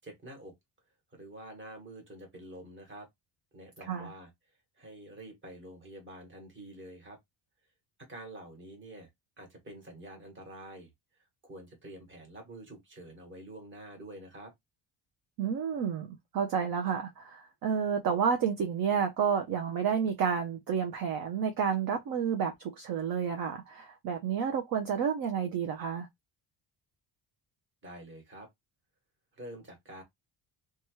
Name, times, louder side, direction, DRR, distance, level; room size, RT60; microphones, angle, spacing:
voice 1, 0.0-0.5 1.1-3.1 3.5-4.3 4.8-7.2 8.0-9.1 9.4-10.9 11.4-14.5 27.8-28.5 29.3-30.0, right 1 dB, 25° right, 1.2 m, -47 dB
voice 2, 3.8-4.1 15.4-26.1, right 7 dB, 50° right, 0.5 m, -30 dB
2.9 x 2.3 x 2.9 m
cardioid pair, 170°, 48 cm